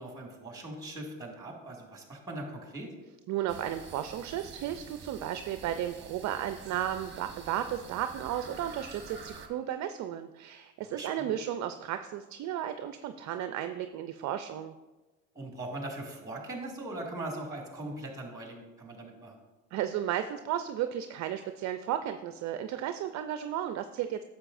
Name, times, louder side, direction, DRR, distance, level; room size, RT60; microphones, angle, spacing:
voice 1, 0.0-2.9 10.9-11.3 15.3-19.4, right 1 dB, 10° right, 0 dB, 2.1 m, -40 dB
voice 2, 3.3-14.7 19.7-24.2, right 11 dB, 45° right, 9 dB, 0.5 m, -34 dB
sound 1, 3.5-9.5, right 5 dB, 30° right, 1.1 m, -48 dB
9.8 x 7.2 x 2.6 m, 1.1 s
supercardioid pair, 90°, 39 cm